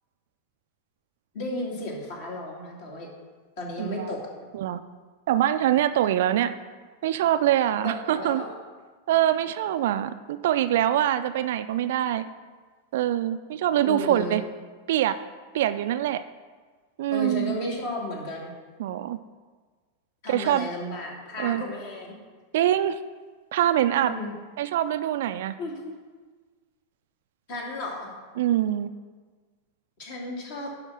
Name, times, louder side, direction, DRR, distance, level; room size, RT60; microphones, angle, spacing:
voice 1, 1.3-3.1 3.6-4.2 6.3-6.4 7.8-8.5 13.8-14.4 17.1-18.5 20.2-22.1 23.9-24.3 25.6-25.9 27.5-28.1 30.0-30.7, left 1 dB, 50° left, -2 dB, 2.3 m, -33 dB
voice 2, 3.8-4.1 4.5-4.8 5.3-6.5 7.0-8.4 9.1-12.2 12.9-14.4 14.9-15.2 15.5-16.2 17.0-17.5 18.8-19.2 20.3-20.7 21.4-21.6 22.5-23.0 23.5-24.1 24.6-25.6 28.4-28.9, right 12 dB, 55° right, 12 dB, 0.4 m, -24 dB
10.5 x 3.6 x 6.3 m, 1.4 s
figure-of-eight pair, 90°, 0 cm